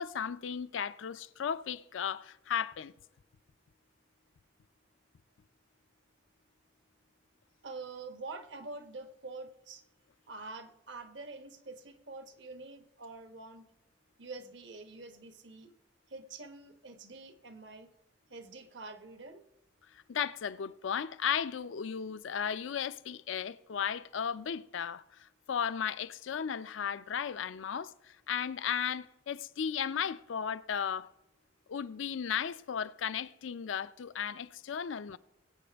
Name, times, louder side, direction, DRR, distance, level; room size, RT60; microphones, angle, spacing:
voice 1, 0.0-2.9 20.1-27.9 28.3-31.1 31.7-35.2, left 7 dB, 80° left, 0.4 m, -35 dB
voice 2, 7.6-9.8 10.3-13.7 14.2-15.7 16.1-17.9 18.3-19.4, right 3 dB, 70° right, 1.1 m, -46 dB
21.0 x 8.6 x 3.4 m
head